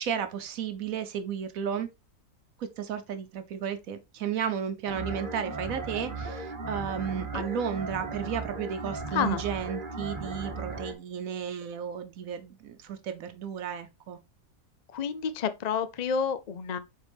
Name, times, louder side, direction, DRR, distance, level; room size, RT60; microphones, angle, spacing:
voice 1, 0.0-1.9 2.6-14.2, right 7 dB, 75° right, 1.1 m, -33 dB
sound 1, 4.9-10.9, right 3 dB, 40° right, 1.3 m, -37 dB
voice 2, 9.1-9.4 14.9-16.8, left 7 dB, 50° left, 0.5 m, -29 dB
7.2 x 4.3 x 3.4 m
omnidirectional pair, 1.5 m